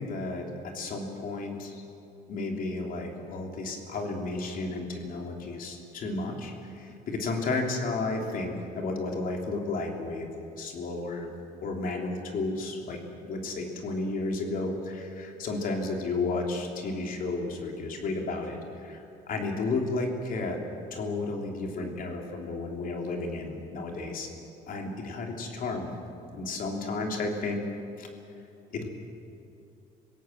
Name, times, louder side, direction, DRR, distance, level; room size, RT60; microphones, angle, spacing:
voice 1, 0.0-1.8 2.3-10.3 10.6-11.3 11.6-13.0 13.2-20.6 20.9-24.3 24.7-25.9 26.3-27.6 28.0-28.1 28.7-28.9, left 3 dB, 55° left, 2 dB, 3.5 m, -32 dB
26.0 x 17.0 x 7.5 m, 2.7 s
cardioid pair, 110°, 17 cm